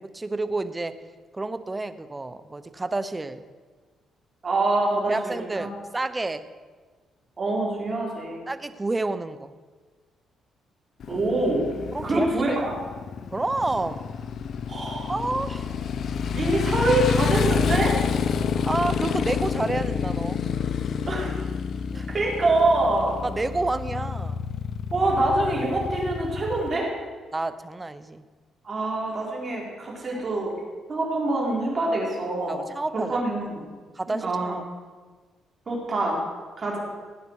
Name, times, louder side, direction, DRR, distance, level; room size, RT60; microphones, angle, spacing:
voice 1, 0.1-1.0 1.3-3.4 5.1-6.4 8.5-9.5 11.1-11.2 11.9-12.3 13.3-14.1 15.1-15.7 18.6-20.4 21.9-22.1 23.2-24.4 27.3-28.2 32.5-33.2 34.0-34.6, right 2 dB, 20° right, 12 dB, 0.8 m, -29 dB
voice 2, 4.4-5.7 7.4-8.5 11.1-11.7 12.0-12.7 14.7-15.1 16.3-18.0 21.1-21.4 22.1-23.2 24.9-26.9 28.6-30.5 30.9-32.6 32.9-33.7 34.1-34.6 35.7-36.2 36.6-36.8, right 2 dB, 35° right, -3 dB, 4.3 m, -25 dB
Motorcycle, 11.0-26.8, left 6 dB, 60° left, 0.7 m, -28 dB
17.5 x 9.5 x 4.8 m, 1.4 s
cardioid pair, 90°, 0 cm